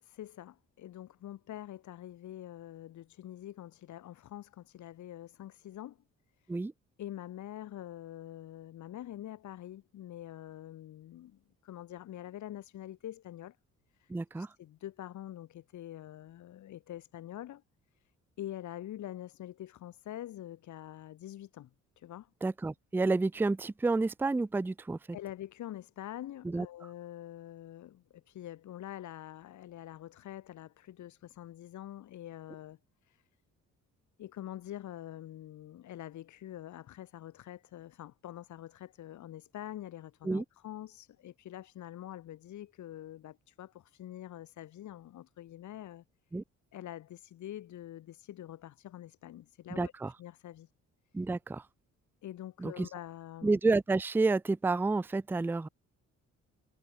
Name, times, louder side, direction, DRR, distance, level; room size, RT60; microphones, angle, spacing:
voice 1, 0.0-6.0 6.4-6.6 7.0-13.6 13.9-17.6 18.0-18.1 18.4-21.7 22.0-22.3 25.1-33.3 34.2-46.0 46.7-49.9 50.2-50.7 51.1-51.2 52.2-53.6, left 12 dB, 70° left, 1.8 m, -45 dB
voice 2, 14.1-14.5 22.4-25.0 26.4-26.7 40.2-40.4 46.3-46.4 49.8-50.1 51.1-51.6 52.6-52.9 53.4-55.7, right 3 dB, 5° right, 0.4 m, -30 dB
cardioid pair, 90°, 30 cm